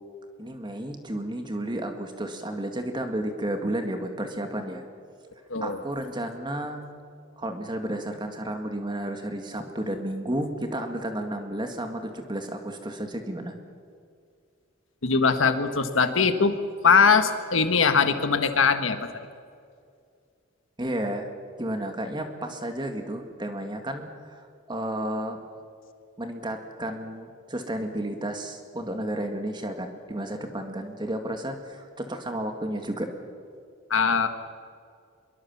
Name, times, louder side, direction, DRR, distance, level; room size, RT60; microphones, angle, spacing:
voice 1, 0.4-4.8 5.6-6.8 7.4-13.6 20.8-21.3 21.6-25.4 26.2-33.1, right 1 dB, 25° right, 5 dB, 2.1 m, -32 dB
voice 2, 15.0-16.5 16.8-19.0 33.9-34.3, left 5 dB, 75° left, 8 dB, 1.6 m, -21 dB
23.5 x 23.0 x 7.3 m, 2.3 s
head